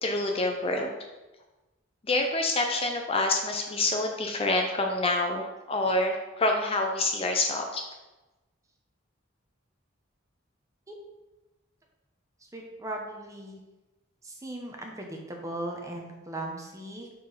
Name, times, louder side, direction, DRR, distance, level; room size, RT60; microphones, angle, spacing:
voice 1, 0.0-0.9 2.1-7.8, left 2 dB, 30° left, 3 dB, 0.6 m, -27 dB
voice 2, 12.5-13.6 14.2-17.1, right 1 dB, 15° right, 1 dB, 1.0 m, -38 dB
5.3 x 4.4 x 5.6 m, 1.1 s
head